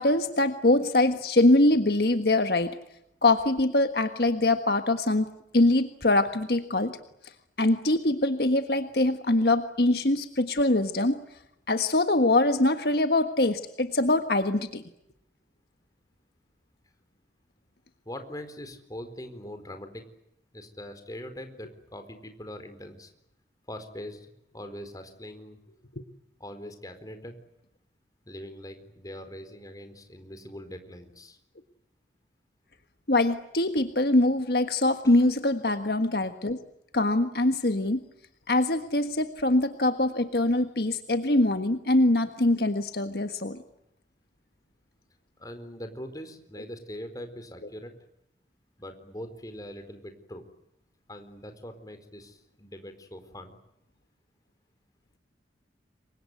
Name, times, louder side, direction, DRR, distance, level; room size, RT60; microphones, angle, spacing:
voice 1, 0.0-2.7 3.2-5.3 5.5-7.0 7.6-11.1 11.7-14.8 33.1-36.6 36.9-38.0 38.5-43.6, left 2 dB, 60° left, 8 dB, 1.5 m, -23 dB
voice 2, 18.0-20.0 20.5-23.1 23.7-25.6 26.4-27.4 28.2-31.4 35.0-35.3 45.4-47.9 48.8-50.4 51.1-53.6, equal, 20° left, 7 dB, 4.4 m, -42 dB
29.0 x 24.0 x 8.1 m, 0.80 s
head